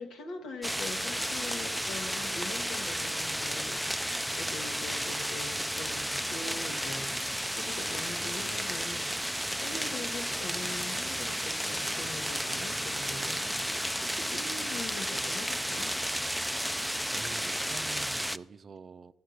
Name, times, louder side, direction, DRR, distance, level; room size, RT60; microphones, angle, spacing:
voice 1, 0.0-9.2 9.6-15.9, left 3 dB, 80° left, 1.5 m, -43 dB
sound 1, 0.6-18.4, equal, ahead, 0.4 m, -33 dB
sound 2, 0.7-14.8, left 2 dB, 45° left, 1.5 m, -55 dB
voice 2, 13.8-14.5 17.1-19.1, right 5 dB, 50° right, 0.5 m, -47 dB
13.5 x 7.6 x 6.5 m
supercardioid pair, 55°, 0 cm